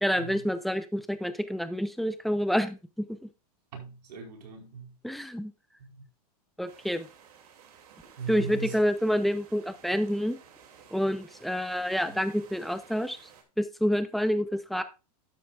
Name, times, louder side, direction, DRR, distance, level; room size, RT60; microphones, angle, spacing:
voice 1, 0.0-3.3 5.0-5.5 6.6-7.1 8.3-10.4 10.9-13.2 13.6-14.8, equal, ahead, 0.7 m, -28 dB
voice 2, 3.7-4.9 5.8-6.0 8.2-8.8, right 6 dB, 80° right, 4.7 m, -40 dB
sound 1, 6.7-13.4, right 7 dB, 65° right, 2.7 m, -54 dB
12.0 x 9.2 x 2.5 m
supercardioid pair, 150°, 21 cm